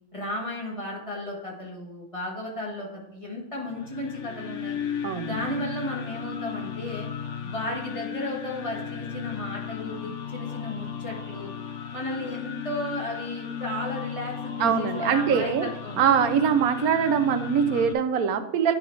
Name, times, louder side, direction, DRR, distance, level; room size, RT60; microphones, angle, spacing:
voice 1, 0.1-4.8 5.2-7.1 7.4-11.5 11.9-16.0, left 1 dB, 25° left, -2 dB, 1.6 m, -34 dB
sound 1, 3.7-17.9, left 8 dB, 60° left, 1.0 m, -35 dB
voice 2, 5.0-5.5 14.6-15.7 16.0-18.7, right 7 dB, 85° right, 8 dB, 1.2 m, -23 dB
10.5 x 3.9 x 4.6 m, 0.87 s
omnidirectional pair, 1.5 m